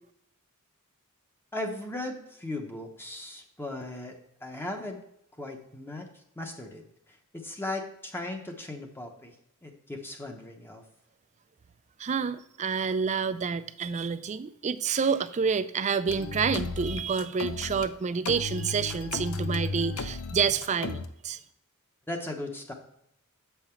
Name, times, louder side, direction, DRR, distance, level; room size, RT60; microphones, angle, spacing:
voice 1, 1.5-4.1 4.4-5.0 5.4-6.1 6.4-9.3 9.6-10.8 22.1-22.7, left 2 dB, 10° left, 2 dB, 0.8 m, -37 dB
voice 2, 12.0-21.4, right 6 dB, 30° right, 13 dB, 0.4 m, -28 dB
sound 1, 16.1-17.9 18.3-21.1, left 3 dB, 65° left, 0.6 m, -34 dB
7.2 x 5.7 x 4.4 m, 0.76 s
head